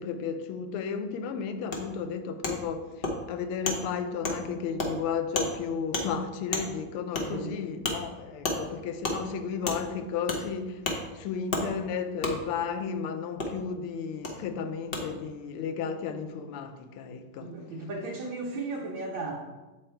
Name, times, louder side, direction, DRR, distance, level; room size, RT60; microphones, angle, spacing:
voice 1, 0.0-10.8 11.1-17.5, left 6 dB, 85° left, 1.5 m, -33 dB
Wood, 1.7-1.8 2.4-2.5 3.0-3.1 3.6-3.8 4.2-4.4 4.8-4.9 5.3-5.5 5.9-6.0 6.5-6.6 7.1-7.3 7.8-8.0 8.4-8.6 9.0-9.2 9.6-9.8 10.3-10.4 10.8-11.0 11.5-11.6 12.2-12.3 13.4-13.5 14.2-14.3 14.9-15.0, left 3 dB, 55° left, 0.6 m, -29 dB
voice 2, 17.4-19.4, right 3 dB, 65° right, 1.5 m, -35 dB
7.7 x 4.1 x 4.4 m
omnidirectional pair, 2.3 m